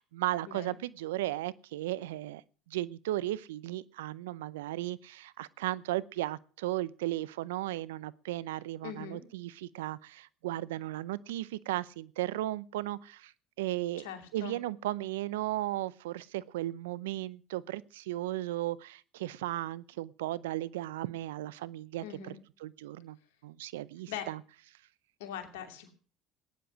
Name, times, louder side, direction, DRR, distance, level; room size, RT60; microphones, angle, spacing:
voice 1, 0.0-2.4 2.7-13.3 13.6-14.1 14.3-23.2 23.4-24.4, right 15 dB, 85° right, 20 dB, 0.6 m, -35 dB
voice 2, 8.8-9.2 14.0-14.6 22.0-22.4 24.1-24.3 25.2-25.9, left 9 dB, 80° left, 6 dB, 2.6 m, -41 dB
16.5 x 10.5 x 6.1 m, 0.41 s
hypercardioid pair, 75°, 0 cm